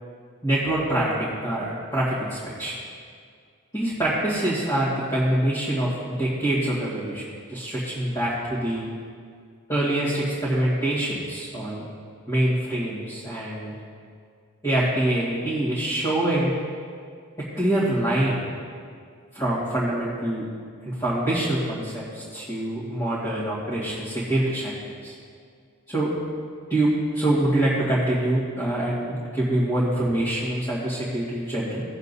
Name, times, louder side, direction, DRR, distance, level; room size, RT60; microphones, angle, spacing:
voice 1, 0.4-2.7 3.7-7.2 7.5-8.9 9.7-11.8 12.3-13.7 14.6-16.5 17.5-18.5 19.3-20.5 20.9-24.7 25.0-25.1 25.9-26.1 26.7-31.8, right 1 dB, 15° left, -10 dB, 2.0 m, -25 dB
18.0 x 7.1 x 2.8 m, 2.2 s
head